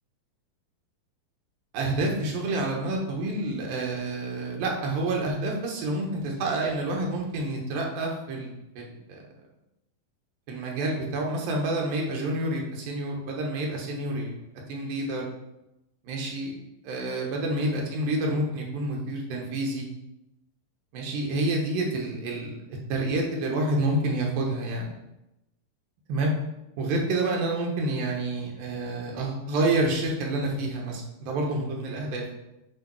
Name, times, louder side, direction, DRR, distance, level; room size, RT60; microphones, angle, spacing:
voice 1, 1.7-9.2 10.5-14.4 14.7-15.3 16.0-16.6 16.8-19.9 20.9-22.6 22.9-25.0 26.1-26.3 26.8-32.3, right 2 dB, 85° right, 0 dB, 2.9 m, -28 dB
8.3 x 3.0 x 4.5 m, 0.89 s
omnidirectional pair, 4.1 m